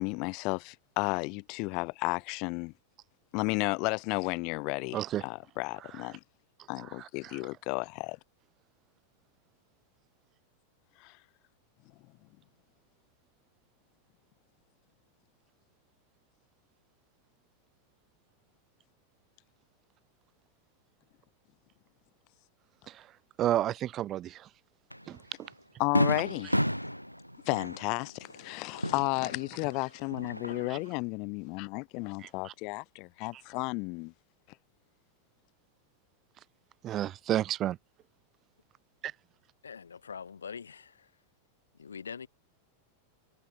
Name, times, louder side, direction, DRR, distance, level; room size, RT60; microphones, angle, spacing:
voice 1, 0.0-2.7 3.3-6.2 6.7-8.2 11.0-11.2 25.8-26.5 27.4-34.1, left 29 dB, 45° left, 1.5 m, -33 dB
voice 2, 4.9-5.2 5.9-6.0 6.8-7.4 22.9-23.1 23.4-24.5 25.1-25.5 30.7-30.8 32.2-32.5 33.3-33.4 36.8-37.8 39.0-39.1, right 12 dB, 30° right, 0.5 m, -32 dB
Fireworks, 24.9-25.0 25.5-25.6 26.0-29.7 30.0-30.9, equal, 90° left, 0.5 m, -32 dB
voice 3, 39.6-41.1 41.8-42.3, left 6 dB, 70° left, 2.0 m, -43 dB
figure-of-eight pair, 90°, 0 cm